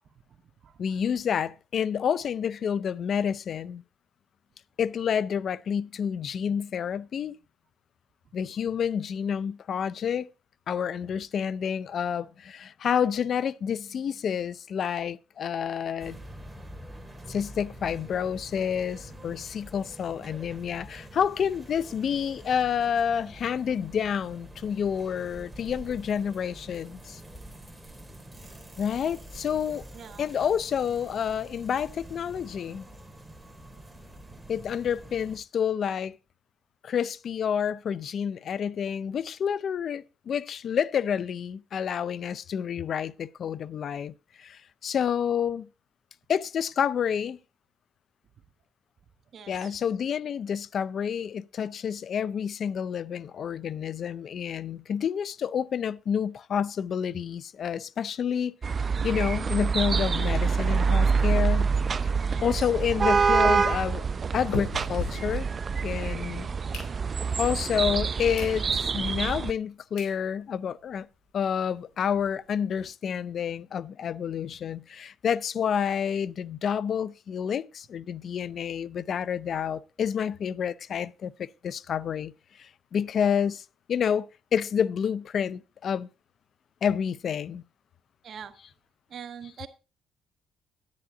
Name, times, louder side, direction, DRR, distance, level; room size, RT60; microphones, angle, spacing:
voice 1, 0.8-3.8 4.8-7.4 8.3-10.3 10.7-16.2 17.3-27.2 28.8-29.8 30.2-32.9 34.5-36.2 36.8-45.7 46.3-47.4 49.5-61.7 62.4-64.0 64.3-65.5 65.8-66.5 67.4-71.1 71.3-82.3 82.6-86.1 86.8-87.6, left 8 dB, 60° left, 0.4 m, -29 dB
sound 1, 16.0-35.4, right 1 dB, 5° right, 2.8 m, -46 dB
voice 2, 29.9-30.3 34.3-34.4 49.3-49.7 62.3-62.7 88.2-88.5 89.1-89.7, right 7 dB, 60° right, 1.4 m, -43 dB
sound 2, 58.6-69.5, right 5 dB, 40° right, 0.5 m, -26 dB
sound 3, 62.1-66.1 66.5-67.4 67.9-68.0 68.3-68.6 69.0-69.1 69.7-69.8 70.0-70.2 70.6-70.7 70.9-71.0 71.3-71.4 71.7-72.8, left 2 dB, 90° left, 4.1 m, -39 dB
10.5 x 10.0 x 3.8 m
cardioid pair, 90°, 0 cm